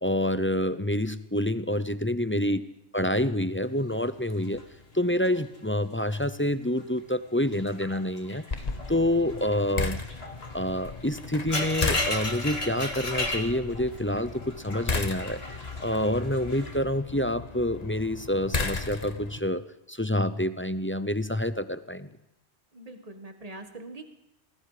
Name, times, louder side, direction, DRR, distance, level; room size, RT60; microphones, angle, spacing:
voice 1, 0.0-2.6 2.9-4.6 4.9-8.4 8.9-10.0 10.5-15.4 15.8-19.6 19.9-22.1, left 1 dB, 15° left, 12 dB, 0.6 m, -27 dB
voice 2, 2.3-2.6 22.7-24.1, right 2 dB, 30° right, 6 dB, 1.9 m, -43 dB
sound 1, 3.9-6.3 6.6-7.0 7.4-16.8, left 2 dB, 60° left, 2.6 m, -36 dB
sound 2, 8.5-19.4, left 3 dB, 35° left, 1.4 m, -35 dB
28.0 x 20.0 x 5.1 m, 0.81 s
omnidirectional pair, 1.2 m